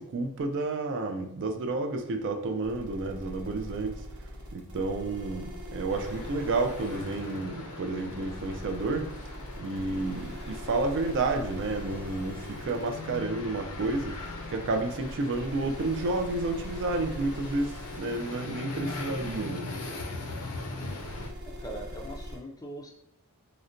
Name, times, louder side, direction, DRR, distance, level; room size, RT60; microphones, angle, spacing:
voice 1, 0.0-4.0 4.5-9.1 9.6-14.2 14.5-19.7, right 3 dB, 55° right, 5 dB, 0.4 m, -31 dB
sound 1, 2.6-22.4, equal, 90° right, 0.9 m, -42 dB
sound 2, 5.9-21.3, left 2 dB, 75° left, 0.5 m, -41 dB
voice 2, 21.6-22.9, right 1 dB, 15° left, 1 dB, 0.4 m, -41 dB
3.9 x 2.1 x 2.5 m, 0.78 s
head